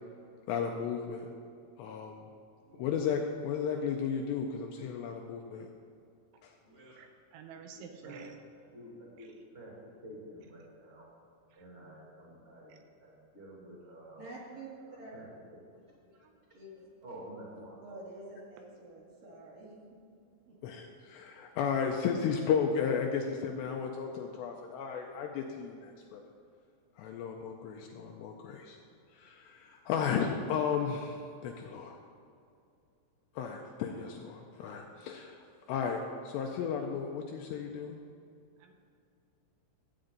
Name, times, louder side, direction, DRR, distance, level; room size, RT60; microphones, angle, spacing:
voice 1, 0.5-1.3 1.8-2.1 2.8-5.7 6.4-6.5 20.6-26.2 27.0-28.8 29.2-32.0 33.4-36.0 36.3-38.0, left 6 dB, 90° left, 2 dB, 2.5 m, -34 dB
voice 2, 2.7-3.0 6.3-6.4 7.0-8.3 9.2-9.3 11.5-11.6 12.7-12.8 16.2-16.4 38.6-38.7, right 7 dB, 85° right, 5 dB, 3.1 m, -51 dB
voice 3, 6.6-6.9 7.6-8.2 8.5-9.7 10.0-11.1 11.5-12.7 13.0-14.3 14.8-15.3 16.1-16.2 17.0-18.0, right 1 dB, 20° right, -5 dB, 1.6 m, -50 dB
voice 4, 14.2-14.7 15.0-15.1 16.5-16.9 17.8-20.0 20.5-20.6, right 2 dB, 55° right, -5 dB, 3.1 m, -48 dB
13.5 x 8.7 x 3.9 m, 2.5 s
omnidirectional pair, 5.5 m